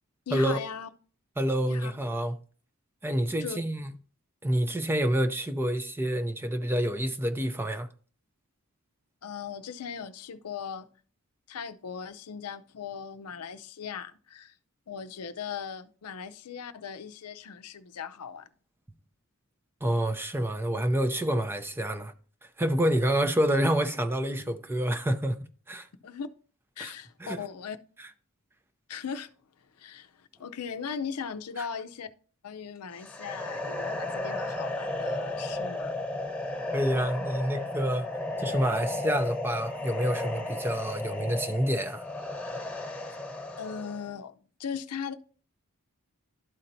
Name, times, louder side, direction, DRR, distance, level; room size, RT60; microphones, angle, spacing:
voice 1, 0.3-0.9 1.7-1.9 3.4-3.6 9.2-10.9 11.5-14.5 14.9-18.5 26.0-26.3 26.8-27.8 28.9-29.3 29.8-32.1 32.4-36.0 43.6-44.3 44.6-45.1, left 6 dB, 85° left, 0.6 m, -38 dB
voice 2, 1.4-2.4 3.0-3.9 4.4-7.9 19.8-22.1 22.6-25.4 25.7-25.9 26.8-26.9 27.2-27.4 36.7-38.1 38.4-42.0, equal, 10° right, 0.5 m, -28 dB
sound 1, 32.9-44.1, left 2 dB, 5° left, 1.0 m, -34 dB
12.0 x 4.3 x 2.7 m
head